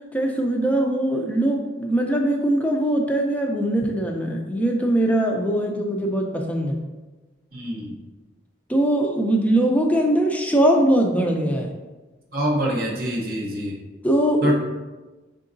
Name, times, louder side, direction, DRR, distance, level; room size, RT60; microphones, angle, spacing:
voice 1, 0.1-6.8 8.7-11.7 14.0-14.5, right 1 dB, 10° left, 1 dB, 0.4 m, -21 dB
voice 2, 7.5-7.9 12.3-13.8 14.4-14.5, equal, 50° right, -2 dB, 0.7 m, -25 dB
5.1 x 3.8 x 2.6 m, 1.2 s
head